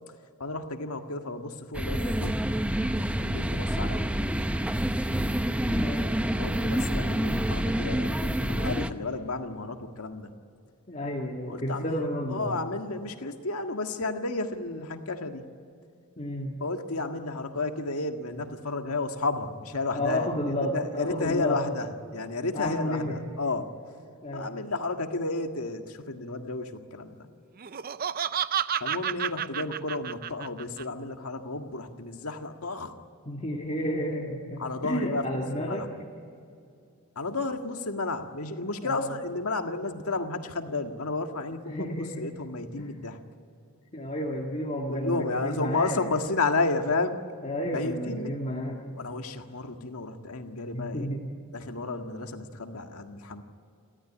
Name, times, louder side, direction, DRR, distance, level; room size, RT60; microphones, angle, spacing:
voice 1, 0.4-2.4 3.2-4.1 6.4-10.3 11.5-15.4 16.6-21.9 22.1-23.7 24.3-27.3 28.8-32.9 34.6-35.2 35.7-35.9 37.2-41.9 42.2-43.2 44.9-47.2 47.7-48.3 48.9-51.1 51.5-53.4, left 3 dB, 75° left, 5 dB, 1.8 m, -32 dB
sound 1, 1.7-8.9, right 1 dB, 5° right, 0.7 m, -27 dB
voice 2, 5.7-6.1 10.9-12.6 16.2-16.5 19.9-21.6 22.5-23.2 24.2-24.5 33.3-35.9 38.8-39.2 41.7-42.3 42.8-42.9 43.9-46.0 47.4-48.8 50.7-51.2, equal, 30° left, -1 dB, 2.0 m, -31 dB
Laughter, 27.6-30.8, right 9 dB, 40° right, 0.5 m, -30 dB
29.5 x 13.5 x 9.9 m, 2.5 s
head